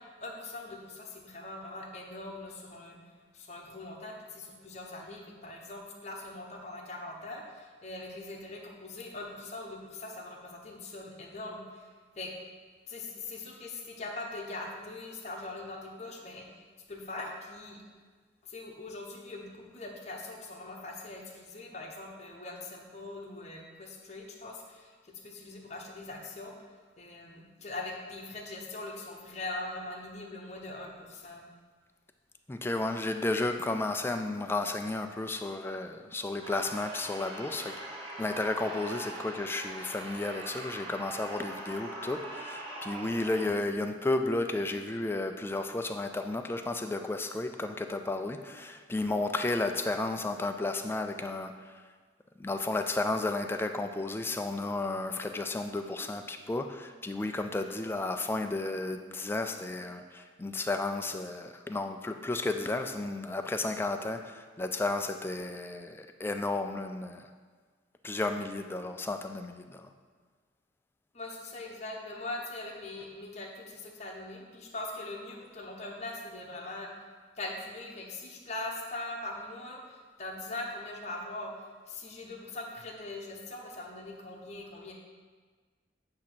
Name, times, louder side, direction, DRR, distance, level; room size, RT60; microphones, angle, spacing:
voice 1, 0.0-3.0 3.3-11.9 12.2-12.3 12.9-16.6 16.9-17.8 18.4-26.7 27.0-31.4 71.1-76.9 77.3-84.9, left 2 dB, 40° left, 0 dB, 0.9 m, -41 dB
voice 2, 32.5-37.9 38.2-51.7 52.4-67.2 68.0-69.9, left 2 dB, 10° left, 6 dB, 0.3 m, -33 dB
sound 1, 36.4-43.5, right 2 dB, 30° right, 1.1 m, -42 dB
8.5 x 2.9 x 6.1 m, 1.5 s
head